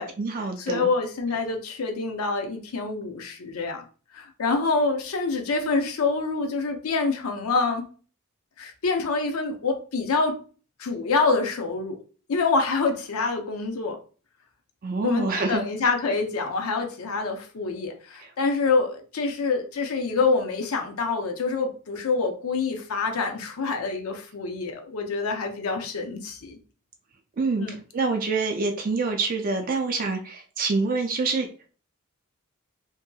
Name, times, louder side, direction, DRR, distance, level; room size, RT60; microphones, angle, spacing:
voice 1, 0.0-0.9 14.8-15.6 18.2-18.3 27.4-27.7 27.9-31.5, right 3 dB, 40° right, 4 dB, 0.4 m, -26 dB
voice 2, 0.6-3.8 4.1-7.8 8.6-10.4 10.8-12.0 12.3-14.0 15.0-26.6 27.6-27.8, left 4 dB, 80° left, 4 dB, 0.6 m, -26 dB
2.7 x 2.6 x 2.3 m, 0.38 s
head